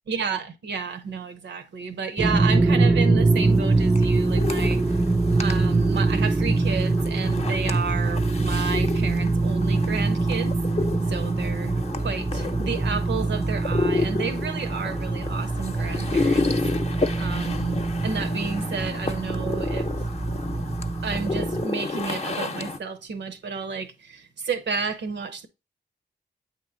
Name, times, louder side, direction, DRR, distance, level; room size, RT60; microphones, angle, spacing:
voice 1, 0.1-5.0 5.4-10.6 11.1-19.9 21.0-25.5, right 5 dB, 85° right, 0.8 m, -31 dB
sound 1, 2.2-21.6, right 3 dB, 10° right, 0.3 m, -24 dB
sound 2, 3.4-22.8, left 3 dB, 35° left, 0.7 m, -31 dB
8.5 x 3.1 x 3.8 m
cardioid pair, 50°, 18 cm